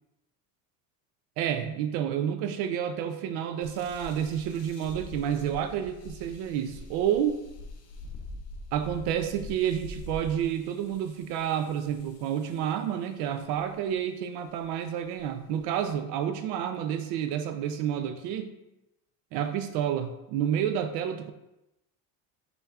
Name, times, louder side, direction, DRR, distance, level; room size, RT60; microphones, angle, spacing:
voice 1, 1.4-7.4 8.7-18.5 19.3-21.3, right 9 dB, 80° right, 9 dB, 0.5 m, -29 dB
sound 1, 3.6-12.8 13.5-13.9 14.6-14.7 15.2-15.9, left 1 dB, 40° left, 0.8 m, -45 dB
5.6 x 3.9 x 2.4 m, 0.92 s
cardioid pair, 165°, 38 cm